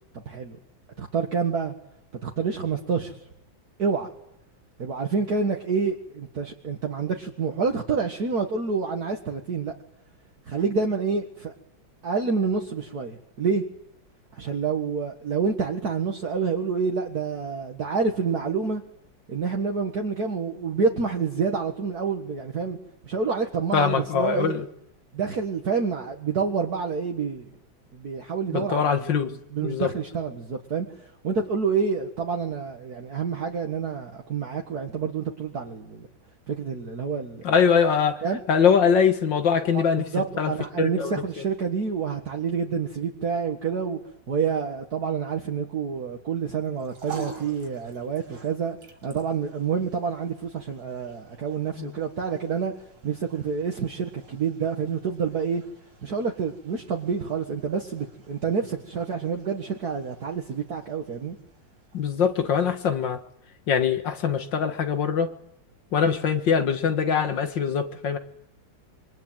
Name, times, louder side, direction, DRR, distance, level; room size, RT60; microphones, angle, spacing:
voice 1, 0.3-0.6 1.0-1.7 2.2-3.2 3.8-4.1 4.8-9.7 10.5-11.5 12.0-13.6 14.3-18.8 19.3-22.8 23.0-24.6 25.1-27.6 27.9-29.0 29.5-30.9 31.2-36.1 36.5-37.4 38.2-38.4 39.7-44.0 44.3-48.8 49.0-52.7 53.0-55.6 56.0-61.4, right 5 dB, 50° right, 2 dB, 2.1 m, -28 dB
voice 2, 23.7-24.7 28.5-29.3 29.6-29.9 37.4-38.2 38.5-40.1 40.4-40.5 40.8-41.2 51.8-51.9 61.9-63.2 63.7-65.3 65.9-68.2, left 6 dB, 65° left, 9 dB, 2.3 m, -22 dB
sound 1, 46.6-63.1, right 5 dB, 80° right, 5.7 m, -48 dB
26.5 x 23.5 x 9.1 m, 0.79 s
omnidirectional pair, 2.2 m